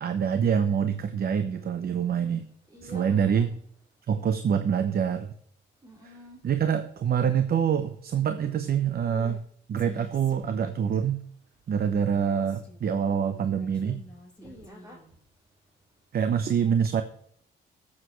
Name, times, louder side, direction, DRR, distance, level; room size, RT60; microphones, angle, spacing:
voice 1, 0.0-2.5 2.8-3.5 4.1-5.3 6.4-9.4 9.7-11.2 11.7-14.0 16.1-17.0, right 7 dB, 50° right, 9 dB, 0.9 m, -25 dB
voice 2, 2.7-3.6 5.8-6.4 14.4-15.0, equal, 15° right, -1 dB, 2.7 m, -47 dB
Female speech woman speaking, 9.0-9.4 9.8-11.0 11.9-13.0 13.5-15.1, left 1 dB, 5° left, 5.6 m, -48 dB
17.0 x 7.5 x 3.1 m, 0.65 s
cardioid pair, 90°, 20 cm